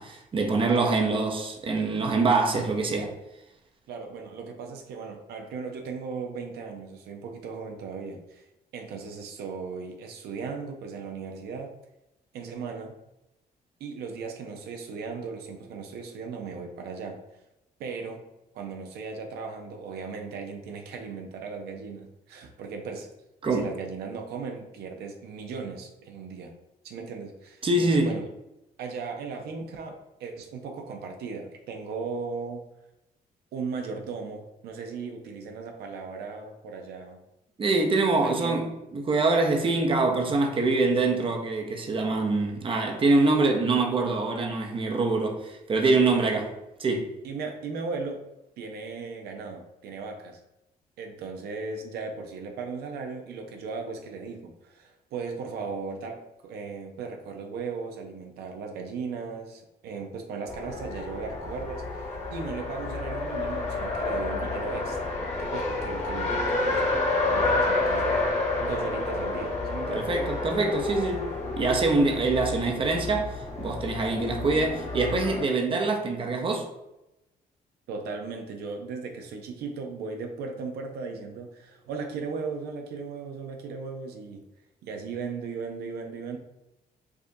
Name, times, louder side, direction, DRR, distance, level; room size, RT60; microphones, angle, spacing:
voice 1, 0.0-3.1 23.4-23.7 27.6-28.1 37.6-46.5 46.8-47.1 69.9-71.3 71.6-73.3 73.6-76.7, right 3 dB, 35° right, 0.6 m, -24 dB
voice 2, 3.9-8.5 8.7-11.7 12.3-13.0 13.8-17.2 17.8-18.2 18.5-23.1 23.5-26.5 26.8-28.3 28.8-32.6 33.5-37.2 38.2-38.6 46.0-46.3 47.2-48.3 48.6-50.4 51.0-65.1 65.4-68.3 68.6-70.1 77.9-84.4 84.8-86.4, right 4 dB, 90° right, 0.5 m, -37 dB
Race car auto racing, 60.5-75.4, left 2 dB, 40° left, 1.1 m, -29 dB
4.8 x 2.4 x 2.6 m
cardioid pair, 105°, 16 cm